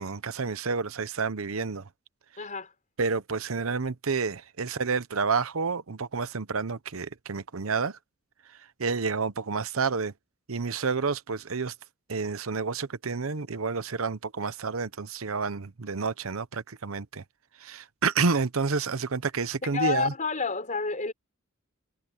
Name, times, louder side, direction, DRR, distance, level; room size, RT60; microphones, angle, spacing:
voice 1, 0.0-1.8 3.0-8.0 8.8-10.1 10.5-11.7 12.1-17.2 17.6-20.1, right 4 dB, 90° right, 0.9 m, -29 dB
voice 2, 2.4-2.7 19.6-21.1, left 4 dB, 40° left, 5.0 m, -29 dB
head